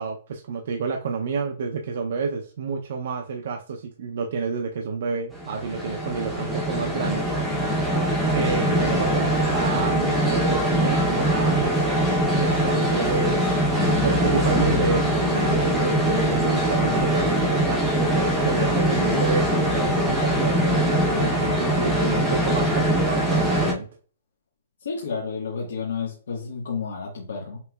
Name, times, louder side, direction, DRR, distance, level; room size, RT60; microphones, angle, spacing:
voice 1, 0.0-7.3 8.3-11.8 12.4-13.6 14.0-23.9, right 5 dB, 55° right, 3 dB, 0.5 m, -29 dB
sound 1, 5.3-23.7, equal, 5° right, 0.6 m, -22 dB
voice 2, 24.8-27.6, left 5 dB, 85° left, -2 dB, 1.2 m, -31 dB
5.9 x 3.0 x 2.2 m, 0.41 s
hypercardioid pair, 175°, 0 cm